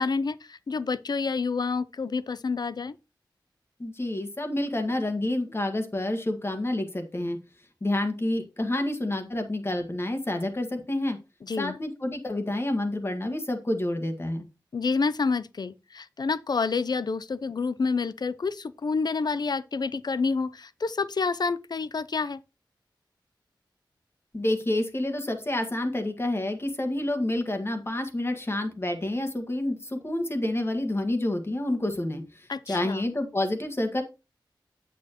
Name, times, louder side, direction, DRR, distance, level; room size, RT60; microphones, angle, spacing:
voice 1, 0.0-3.0 11.4-11.8 14.7-22.4 32.5-33.0, left 4 dB, 60° left, 0.5 m, -28 dB
voice 2, 3.8-7.4 7.8-11.2 11.6-14.5 24.3-34.0, left 1 dB, 30° left, 1.5 m, -28 dB
8.2 x 6.8 x 3.0 m
wide cardioid pair, 85°, 8 cm